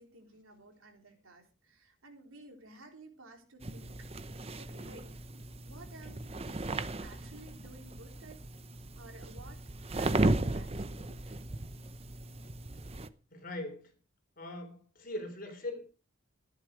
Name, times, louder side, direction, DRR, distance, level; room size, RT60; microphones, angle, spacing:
voice 1, 0.0-4.1 4.6-5.2 5.6-6.2 7.0-8.4 9.0-9.6 9.9-11.4, right 2 dB, 85° right, 3.8 m, -54 dB
sound 1, 3.6-13.1, right 2 dB, 30° right, 0.7 m, -36 dB
voice 2, 13.3-13.9 14.4-15.8, left 1 dB, 45° left, 3.8 m, -40 dB
14.0 x 11.5 x 5.1 m
head